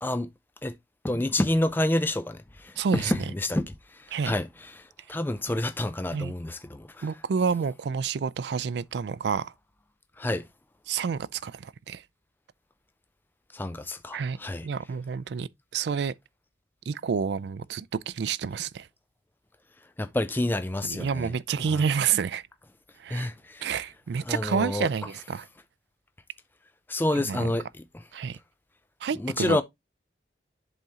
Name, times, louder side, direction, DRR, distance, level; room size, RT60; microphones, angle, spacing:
voice 1, 1.0-3.6 4.2-4.5 5.1-6.9 10.2-10.5 13.5-14.7 20.0-21.3 21.7-21.8 23.1-23.7 24.3-24.9 26.9-27.6 29.2-29.6, left 1 dB, 10° left, 0.4 m, -28 dB
voice 2, 2.8-3.3 4.1-4.3 6.1-6.3 7.0-9.5 10.9-12.0 14.1-14.4 14.6-16.1 16.9-18.9 20.8-22.4 23.0-23.3 23.6-25.5 27.1-27.5 28.1-28.4 29.0-29.6, right 6 dB, 70° right, 0.4 m, -29 dB
10.5 x 3.6 x 2.8 m
head